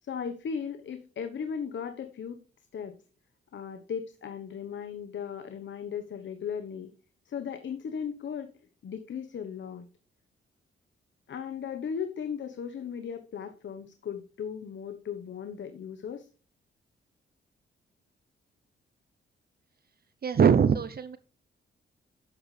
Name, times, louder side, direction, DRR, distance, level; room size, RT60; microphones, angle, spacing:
voice 1, 0.0-2.4 2.7-2.9 3.5-6.9 7.2-8.5 8.8-9.9 11.3-16.3, left 7 dB, 65° left, 8 dB, 1.1 m, -37 dB
voice 2, 20.2-21.2, right 7 dB, 50° right, 12 dB, 0.7 m, -22 dB
11.5 x 7.9 x 3.3 m, 0.37 s
cardioid pair, 65°, 21 cm